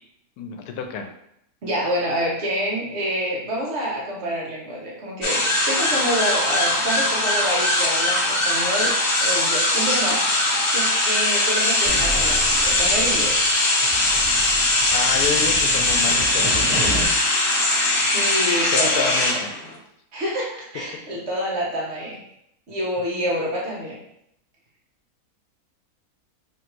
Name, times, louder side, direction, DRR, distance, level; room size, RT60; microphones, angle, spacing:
voice 1, 0.4-1.1 14.9-17.1 18.7-19.6, left 6 dB, 85° left, 5 dB, 1.1 m, -29 dB
voice 2, 1.6-10.2 10.7-13.4 18.1-19.4 20.1-22.2 22.7-24.0, equal, 50° right, -4 dB, 1.1 m, -27 dB
sound 1, 5.2-19.8, left 1 dB, 50° left, 0.7 m, -20 dB
sound 2, 11.9-13.5 13.8-17.0, right 1 dB, 5° left, 1.0 m, -31 dB
3.1 x 2.6 x 4.4 m, 0.76 s
omnidirectional pair, 1.6 m